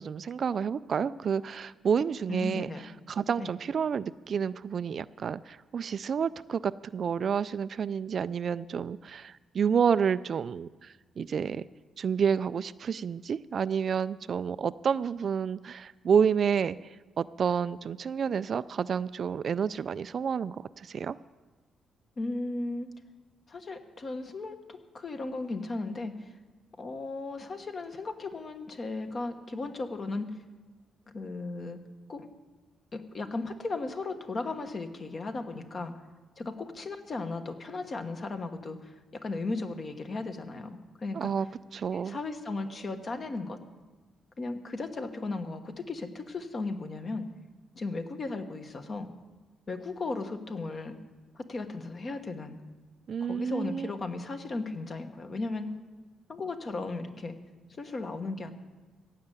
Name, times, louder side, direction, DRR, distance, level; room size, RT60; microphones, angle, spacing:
voice 1, 0.0-2.7 3.1-11.7 12.0-16.8 17.2-21.2 41.1-41.5 41.7-42.2 53.1-53.9, right 7 dB, 45° right, 15 dB, 0.3 m, -29 dB
voice 2, 2.3-2.8 3.4-3.5 22.2-22.9 23.5-26.1 26.8-30.4 31.1-31.8 32.1-32.3 32.9-35.9 36.4-41.3 41.9-43.6 44.4-47.3 47.7-49.1 49.7-51.0 51.3-52.6 53.2-55.7 56.3-57.4 57.8-58.5, left 3 dB, 35° left, 7 dB, 1.2 m, -36 dB
15.5 x 6.6 x 9.0 m, 1.3 s
cardioid pair, 120°, 0 cm